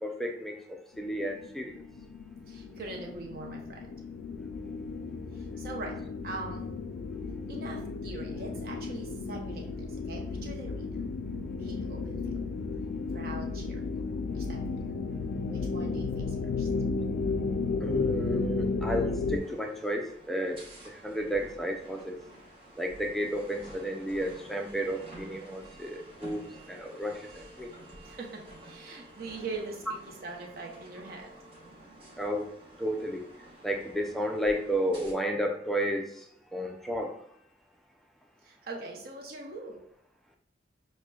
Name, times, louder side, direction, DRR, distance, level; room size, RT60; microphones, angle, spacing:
voice 1, 0.0-1.8 13.3-13.4 17.8-22.2 22.8-27.7 32.2-32.5 32.8-33.2 33.6-37.1, equal, ahead, 2 dB, 0.3 m, -32 dB
sound 1, 1.1-19.4, left 4 dB, 90° left, 0.3 m, -34 dB
voice 2, 2.5-3.8 5.6-6.0 6.2-6.6 7.5-9.7 10.1-10.9 11.6-12.2 13.1-13.8 14.3-14.6 15.5-16.7 28.1-31.3 38.4-39.8, right 3 dB, 55° right, 0 dB, 0.7 m, -42 dB
sound 2, 19.4-35.1, right 1 dB, 30° right, 0.9 m, -50 dB
6.2 x 2.1 x 2.3 m, 0.68 s
head